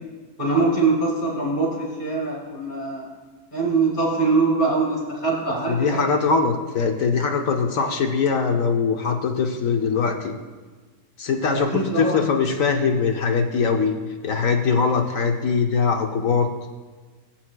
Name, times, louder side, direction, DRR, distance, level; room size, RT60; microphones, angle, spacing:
voice 1, 0.4-3.1 3.5-6.2 11.5-12.1, right 3 dB, 30° left, -4 dB, 3.6 m, -23 dB
voice 2, 5.7-10.4 11.2-13.9 14.2-16.5, left 5 dB, 65° left, 3 dB, 1.1 m, -22 dB
19.5 x 7.7 x 2.2 m, 1.3 s
omnidirectional pair, 1.6 m